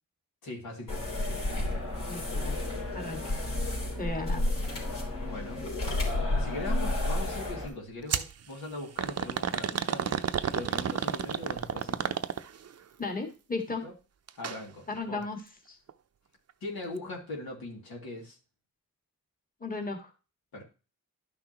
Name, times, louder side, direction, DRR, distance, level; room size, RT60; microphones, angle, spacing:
voice 1, 0.4-1.1 5.2-5.6 6.2-12.2 13.8-13.9 14.4-15.2 16.6-18.4 20.5-20.6, left 2 dB, 85° left, -1 dB, 2.7 m, -41 dB
sound 1, 0.9-7.7, left 1 dB, 60° left, 3.4 m, -31 dB
voice 2, 2.1-2.6 2.9-3.4 4.0-4.5 13.0-13.8 14.9-15.4 15.7-15.8 19.6-20.1, left 3 dB, 25° left, 4 dB, 1.8 m, -35 dB
sound 2, 8.1-8.3 9.0-12.7 14.3-14.6 14.9-15.0 15.9-16.0, right 8 dB, 45° right, 0.6 m, -31 dB
11.5 x 5.9 x 3.0 m, 0.32 s
cardioid pair, 70°, 36 cm